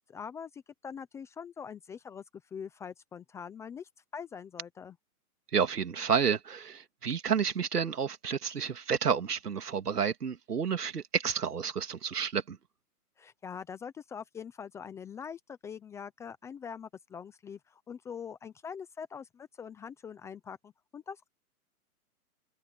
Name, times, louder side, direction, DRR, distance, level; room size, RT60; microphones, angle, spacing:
voice 1, 0.1-2.2 2.5-5.0 13.2-21.3, left 7 dB, 5° left, 0.6 m, -43 dB
voice 2, 5.5-12.6, right 7 dB, 90° right, 3.1 m, -30 dB
open air
hypercardioid pair, 145°, 45 cm